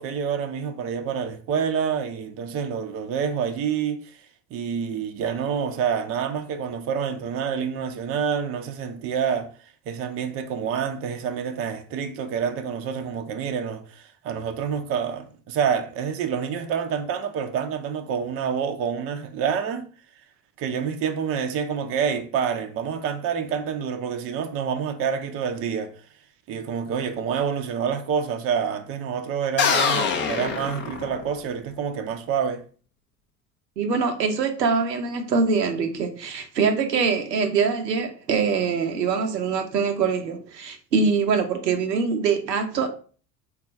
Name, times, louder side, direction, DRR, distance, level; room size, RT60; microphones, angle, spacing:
voice 1, 0.0-4.2 4.5-9.5 9.9-19.9 20.6-25.9 26.5-32.6, right 7 dB, 30° right, 0.4 m, -27 dB
sound 1, 29.6-31.5, left 6 dB, 25° left, 0.4 m, -24 dB
voice 2, 33.8-42.9, right 5 dB, 90° right, 0.6 m, -23 dB
3.7 x 2.3 x 4.2 m
hypercardioid pair, 70°, 49 cm